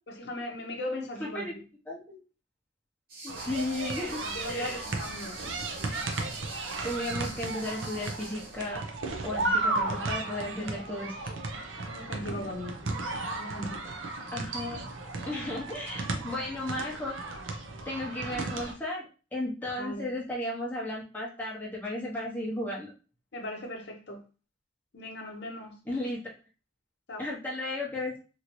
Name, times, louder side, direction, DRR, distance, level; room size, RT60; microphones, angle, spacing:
voice 1, 0.1-1.6 4.2-5.4 11.8-12.9 13.3-13.9 19.8-20.2 23.3-24.2 24.9-25.8 27.1-27.3, left 1 dB, 60° left, 3 dB, 0.6 m, -38 dB
voice 2, 1.2-1.5 1.9-2.2 3.2-4.8 6.8-8.8 9.2-11.3 14.3-14.8 15.3-17.2 17.9-22.9 25.9-26.2 27.2-28.2, left 1 dB, 10° left, -5 dB, 0.7 m, -34 dB
sound 1, 3.1-8.7, right 2 dB, 50° right, 1.0 m, -45 dB
sound 2, 3.3-18.7, right 2 dB, 85° right, 0.6 m, -34 dB
3.0 x 2.6 x 2.9 m, 0.35 s
head